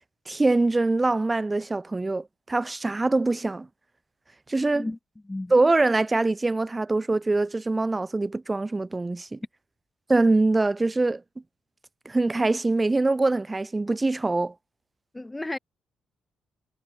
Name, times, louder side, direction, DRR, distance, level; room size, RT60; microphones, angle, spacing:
voice 1, 0.3-3.7 4.5-4.9 5.5-9.4 10.1-11.2 12.1-14.5, right 2 dB, 20° right, 1.7 m, -23 dB
voice 2, 15.1-15.6, left 2 dB, 15° left, 0.5 m, -32 dB
cardioid pair, 90°, 0 cm